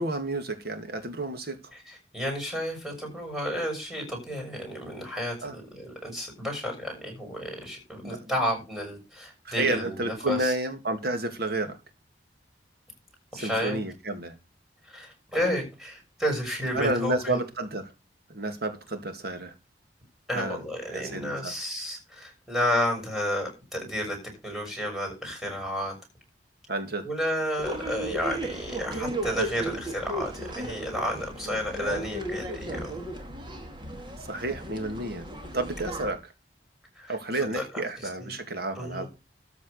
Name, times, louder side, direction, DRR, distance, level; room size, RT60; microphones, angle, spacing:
voice 1, 0.0-1.6 5.4-5.6 8.0-8.3 9.5-11.8 13.3-14.3 16.7-17.9 18.3-19.5 20.3-20.6 20.9-21.5 26.7-27.1 34.2-35.2 35.5-36.2 37.1-39.0, right 2 dB, 65° right, 8 dB, 2.2 m, -30 dB
voice 2, 1.7-10.5 13.4-13.8 14.8-17.4 20.3-24.2 24.4-25.9 27.0-33.0 36.9-38.3 38.8-39.1, equal, ahead, 1 dB, 6.6 m, -31 dB
sound 1, 27.6-36.1, right 1 dB, 30° right, 2.2 m, -35 dB
13.5 x 5.2 x 6.6 m, 0.27 s
head